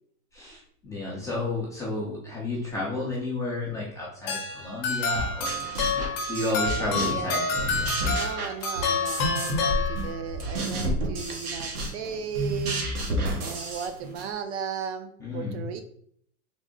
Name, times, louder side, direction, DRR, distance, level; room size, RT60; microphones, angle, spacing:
voice 1, 0.3-5.8 6.3-8.0 10.7-10.9 15.2-15.6, left 2 dB, 10° left, -6 dB, 0.4 m, -32 dB
sound 1, 4.3-10.4, left 3 dB, 40° left, 0.8 m, -29 dB
sound 2, 5.2-7.3 7.5-9.7 10.0-14.3, right 1 dB, 90° right, 1.1 m, -31 dB
voice 2, 6.8-7.5 8.2-12.8 13.4-15.8, right 7 dB, 50° right, 7 dB, 0.5 m, -35 dB
3.5 x 2.1 x 3.7 m, 0.63 s
supercardioid pair, 135°, 44 cm